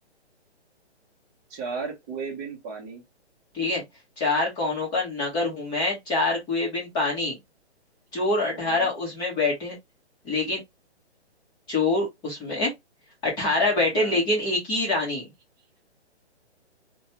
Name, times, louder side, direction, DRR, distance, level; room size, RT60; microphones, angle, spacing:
voice 1, 1.5-3.0 8.5-8.9 13.9-14.2, right 4 dB, 15° right, 0.8 m, -35 dB
voice 2, 4.2-7.4 8.1-9.7 10.2-10.6 11.7-12.7 13.2-15.2, left 2 dB, 10° left, 0.9 m, -25 dB
3.2 x 2.2 x 2.8 m
hypercardioid pair, 155°, 34 cm